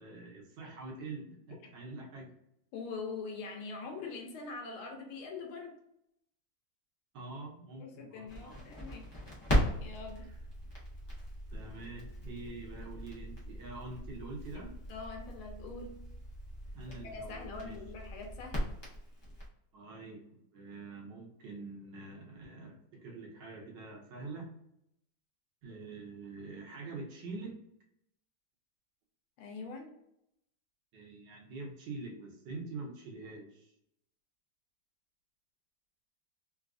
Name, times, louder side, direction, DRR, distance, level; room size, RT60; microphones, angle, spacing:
voice 1, 0.0-2.3 7.1-8.7 10.2-10.4 11.5-14.7 16.7-17.8 19.7-24.5 25.6-27.6 30.9-33.7, right 3 dB, 65° right, -2 dB, 1.4 m, -45 dB
voice 2, 2.7-5.8 7.8-9.1 9.8-10.3 14.9-16.0 16.9-18.8 29.4-29.9, left 4 dB, 80° left, 2 dB, 1.6 m, -43 dB
Crackle, 8.3-19.5, equal, 35° left, 0.4 m, -38 dB
3.9 x 2.4 x 2.4 m, 0.79 s
omnidirectional pair, 2.3 m